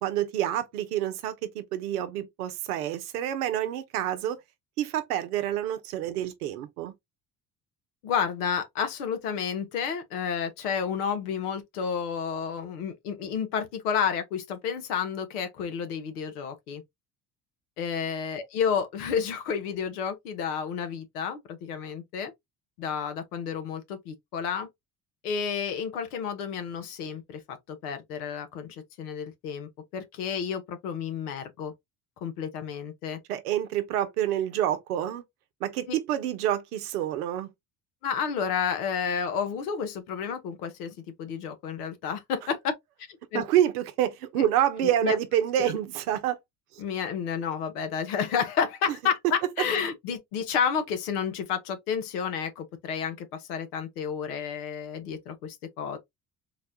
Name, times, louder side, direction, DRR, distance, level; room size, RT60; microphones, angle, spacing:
voice 1, 0.0-4.4 4.8-6.9 33.3-35.2 35.6-37.5 43.3-46.4 48.9-49.0, right 11 dB, 85° right, 0.7 m, -28 dB
voice 2, 8.0-16.8 17.8-22.3 22.8-24.7 25.2-31.7 32.2-33.2 35.9-36.0 38.0-42.7 43.3-43.4 44.8-45.2 46.8-56.0, left 7 dB, 85° left, 0.9 m, -31 dB
3.9 x 2.2 x 2.6 m
hypercardioid pair, 65°, 44 cm